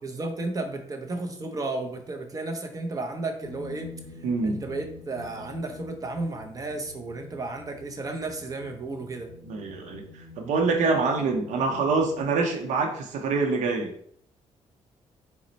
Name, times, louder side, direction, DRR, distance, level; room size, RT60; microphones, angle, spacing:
voice 1, 0.0-3.9 4.4-9.3, right 2 dB, 30° right, 4 dB, 0.6 m, -33 dB
sound 1, 3.4-12.2, left 4 dB, 20° left, 0.8 m, -46 dB
voice 2, 4.2-4.6 9.5-13.9, right 4 dB, 90° right, 2 dB, 0.6 m, -25 dB
4.1 x 2.1 x 3.9 m, 0.64 s
cardioid pair, 130°, 12 cm